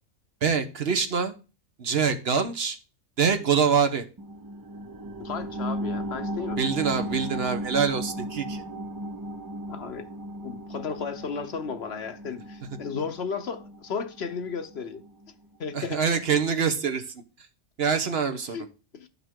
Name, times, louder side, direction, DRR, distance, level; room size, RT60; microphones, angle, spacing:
voice 1, 0.4-1.3 1.8-2.8 3.2-4.0 6.6-8.6 15.7-17.0 17.8-18.7, right 6 dB, 55° right, 1.1 m, -25 dB
sound 1, 4.2-15.3 15.7-15.8, right 1 dB, 25° right, 0.5 m, -36 dB
voice 2, 5.2-6.6 9.7-10.1 10.4-15.0 15.6-16.0 18.5-18.6 18.9-19.1, left 5 dB, 60° left, 1.0 m, -34 dB
11.5 x 5.9 x 3.6 m
omnidirectional pair, 1.3 m